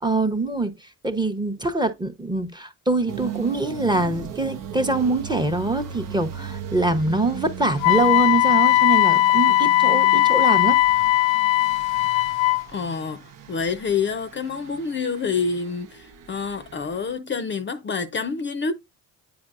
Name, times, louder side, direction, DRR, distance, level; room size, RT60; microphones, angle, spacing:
voice 1, 0.0-0.7 1.0-10.8, right 2 dB, 15° right, 0.8 m, -24 dB
sound 1, 3.1-17.1, right 8 dB, 65° right, 0.8 m, -38 dB
Wind instrument woodwind instrument, 7.8-12.6, left 16 dB, 90° left, 0.5 m, -18 dB
voice 2, 12.7-18.7, left 5 dB, 35° left, 0.5 m, -27 dB
8.7 x 4.6 x 2.4 m
cardioid pair, 80°, 34 cm